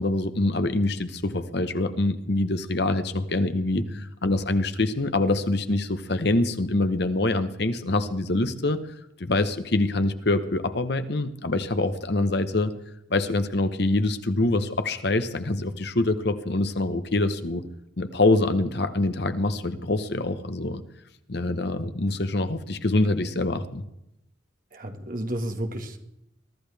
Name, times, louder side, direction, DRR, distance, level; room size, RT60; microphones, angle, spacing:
voice 1, 0.0-8.8 9.2-12.7 13.1-17.6 18.0-20.8 21.3-23.8, left 2 dB, 55° left, 10 dB, 1.1 m, -25 dB
voice 2, 24.7-26.0, right 1 dB, 45° right, 5 dB, 1.9 m, -32 dB
23.0 x 13.5 x 3.5 m, 0.82 s
head